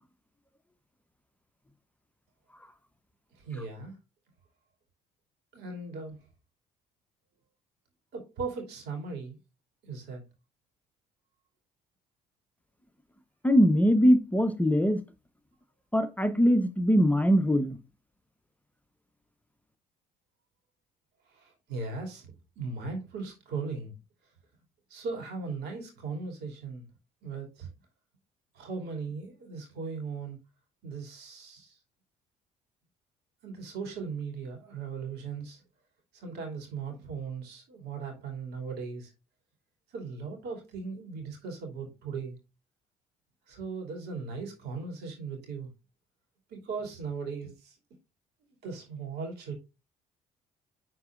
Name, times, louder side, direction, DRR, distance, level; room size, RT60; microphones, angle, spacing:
voice 1, 3.3-4.0 5.5-6.2 8.1-9.4 9.8-10.2 21.3-23.9 24.9-26.8 27.2-27.7 28.5-30.4 30.8-31.8 33.4-35.6 36.1-39.1 39.9-42.4 43.5-45.7 46.5-47.8 48.4-49.5, right 4 dB, 70° right, 2.6 m, -38 dB
voice 2, 13.4-15.0 15.9-17.8, equal, 10° left, 0.8 m, -22 dB
10.5 x 3.8 x 2.5 m
hypercardioid pair, 55°, 18 cm